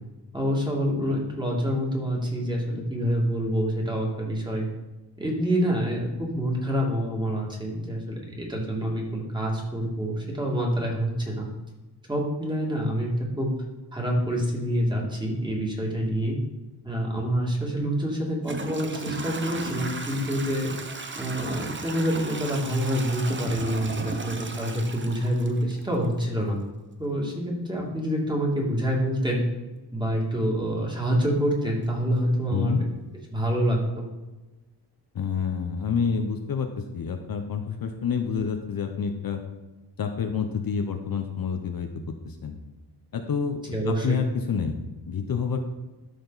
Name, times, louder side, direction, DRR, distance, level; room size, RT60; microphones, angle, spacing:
voice 1, 0.3-4.7 5.2-11.5 12.1-13.5 13.9-16.4 16.8-20.7 21.2-26.6 27.0-29.4 29.9-32.7 33.3-34.1 43.7-44.2, equal, 10° right, -2 dB, 2.3 m, -27 dB
Toilet flush / Trickle dribble, 17.6-17.7 18.4-26.2, right 3 dB, 25° right, 0.8 m, -36 dB
voice 2, 32.5-32.8 35.1-39.4 40.0-41.9 42.3-42.6 43.1-44.8 45.1-45.6, left 6 dB, 55° left, 5 dB, 0.9 m, -28 dB
13.0 x 5.1 x 4.1 m, 1.1 s
wide cardioid pair, 115°, 42 cm